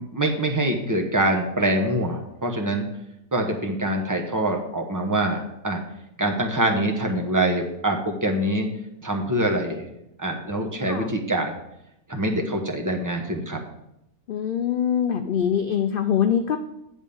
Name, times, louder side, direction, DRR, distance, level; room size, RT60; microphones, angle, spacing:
voice 1, 0.0-2.8 3.3-5.4 5.6-5.8 6.2-8.7 9.0-9.9 10.2-11.5 12.1-13.6, right 1 dB, 15° right, 2 dB, 0.9 m, -24 dB
voice 2, 14.3-16.6, left 8 dB, 85° left, 7 dB, 0.4 m, -23 dB
9.6 x 3.6 x 6.9 m, 0.84 s
omnidirectional pair, 1.5 m